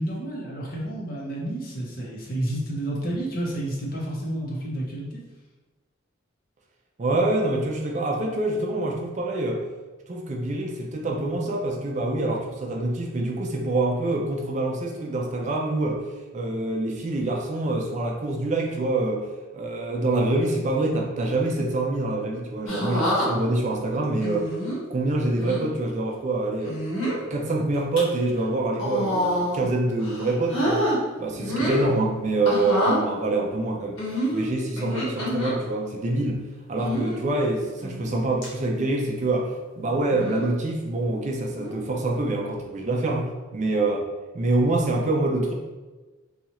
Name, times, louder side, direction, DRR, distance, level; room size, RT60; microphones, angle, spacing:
voice 1, 0.0-5.2, right 1 dB, 45° left, -3 dB, 0.8 m, -30 dB
voice 2, 7.0-9.6 10.1-16.0 16.3-19.3 19.5-24.5 24.9-26.8 27.2-30.8 31.2-34.0 34.3-36.4 36.7-44.0 44.3-45.5, right 2 dB, 35° right, 0 dB, 0.4 m, -25 dB
sound 1, 22.7-23.3 24.2-24.8 25.4-25.6 26.6-27.2 27.7-28.0 28.7-29.7 30.0-31.0 31.4-31.9 32.4-33.0 34.0-35.5 36.8-37.2 37.8-38.1 38.4-38.5 40.1-40.5 41.6-41.9, equal, 80° left, 1.1 m, -27 dB
4.2 x 2.3 x 2.9 m, 1.2 s
head